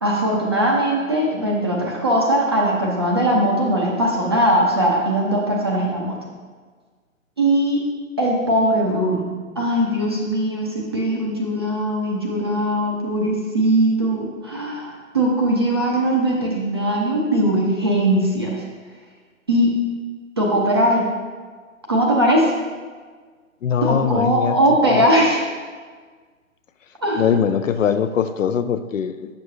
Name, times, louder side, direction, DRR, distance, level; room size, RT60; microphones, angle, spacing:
voice 1, 0.0-6.2 7.4-7.8 8.2-9.2 9.6-18.6 19.5-19.7 20.4-21.1 21.9-22.5 23.8-25.4 27.0-27.3, right 1 dB, 20° right, -2 dB, 0.4 m, -20 dB
voice 2, 23.6-24.6 24.9-25.0 27.2-29.3, left 8 dB, 65° left, 11 dB, 0.5 m, -21 dB
8.3 x 6.5 x 2.7 m, 1.5 s
figure-of-eight pair, 140°, 41 cm